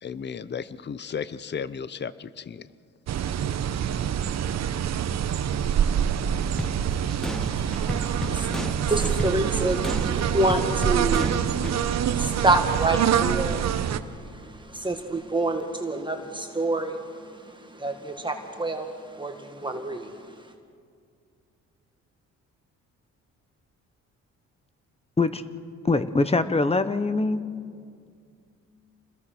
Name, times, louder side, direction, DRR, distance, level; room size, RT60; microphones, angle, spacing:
voice 1, 0.0-2.7, left 7 dB, 35° left, 16 dB, 0.8 m, -34 dB
sound 1, 3.1-14.0, right 9 dB, 60° right, 1.1 m, -26 dB
sound 2, 6.6-11.8, left 1 dB, ahead, 0.6 m, -34 dB
voice 2, 7.4-8.5 8.9-20.5, right 2 dB, 15° right, 3 dB, 1.9 m, -28 dB
voice 3, 25.8-27.4, left 3 dB, 20° left, 12 dB, 1.2 m, -23 dB
28.0 x 21.0 x 6.3 m, 2.2 s
cardioid pair, 90°, 30 cm